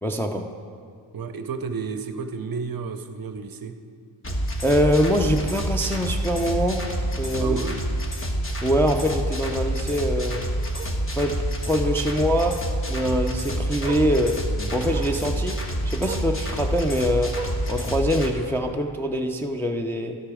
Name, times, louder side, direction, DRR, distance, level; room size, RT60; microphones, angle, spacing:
voice 1, 0.0-0.5 4.6-6.9 7.2-7.6 8.6-10.4 11.2-12.6 12.9-15.6 15.8-17.3 17.7-20.2, equal, 5° left, 2 dB, 0.4 m, -24 dB
voice 2, 1.1-3.8 7.4-7.8, right 5 dB, 45° right, 9 dB, 0.6 m, -32 dB
sound 1, 4.2-18.3, right 1 dB, 25° left, 1.0 m, -27 dB
Bark, 4.3-4.5 4.9-5.0 5.3-5.4 5.7-5.8 7.2-7.3 9.8-9.9 10.7-11.0 11.8-12.1 13.3-13.4 13.8-14.1 14.9-15.2 16.0-16.3 17.3-17.7 18.7-18.8, right 5 dB, 10° right, 0.8 m, -38 dB
12.5 x 6.6 x 4.9 m, 2.3 s
cardioid pair, 110°, 48 cm